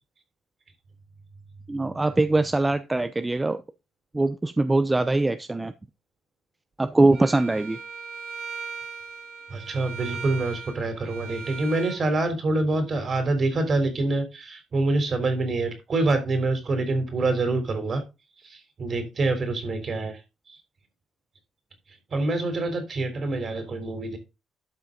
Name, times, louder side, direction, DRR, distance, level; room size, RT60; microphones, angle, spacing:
voice 1, 1.7-3.6 4.1-5.7 6.8-7.8, right 2 dB, 15° right, 0.7 m, -22 dB
Bowed string instrument, 7.1-12.0, right 5 dB, 70° right, 4.7 m, -38 dB
voice 2, 9.5-18.0 18.4-20.2 20.5-20.6 22.1-24.2, right 2 dB, 45° right, 3.6 m, -26 dB
12.0 x 5.7 x 3.9 m
cardioid pair, 90°, 0 cm